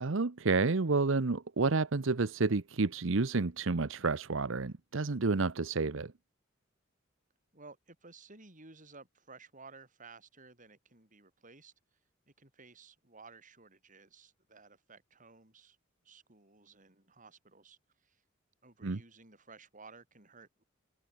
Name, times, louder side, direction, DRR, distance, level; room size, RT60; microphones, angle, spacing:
voice 1, 0.0-6.1 18.8-19.0, right 3 dB, 70° right, 0.9 m, -30 dB
voice 2, 7.5-11.7 12.3-15.8 16.0-18.2 18.6-20.6, right 4 dB, 40° right, 7.5 m, -56 dB
head